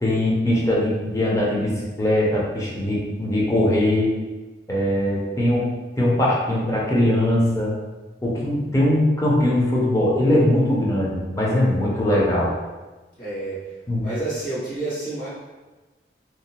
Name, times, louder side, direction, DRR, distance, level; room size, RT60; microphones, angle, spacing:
voice 1, 0.0-4.1 4.7-5.7 6.0-7.7 8.2-12.5 13.9-14.0, left 1 dB, 20° left, -5 dB, 0.5 m, -21 dB
voice 2, 13.2-13.6 14.0-15.3, right 2 dB, 50° left, -11 dB, 1.3 m, -29 dB
2.7 x 2.0 x 2.8 m, 1.2 s
head